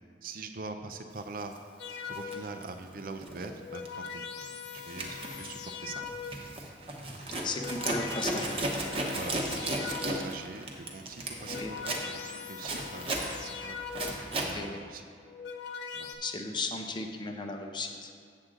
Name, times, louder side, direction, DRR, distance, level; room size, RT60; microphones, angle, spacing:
voice 1, 0.2-1.5 2.1-4.3 4.7-6.0 9.1-13.8 14.4-15.0 15.9-16.1, right 3 dB, 55° right, 7 dB, 0.5 m, -43 dB
Zipper (clothing), 1.4-1.6 2.1-3.5 3.7-4.1 4.4-14.6, right 1 dB, 35° right, 0.9 m, -35 dB
sound 1, 1.8-2.7 3.4-6.6 7.3-10.5 11.2-14.4 15.1-16.1, left 6 dB, 75° left, 0.6 m, -41 dB
voice 2, 7.4-8.6 11.6-11.7 14.5-14.8 16.2-18.1, left 3 dB, 25° left, 3 dB, 0.6 m, -35 dB
7.8 x 7.5 x 3.8 m, 2.3 s
head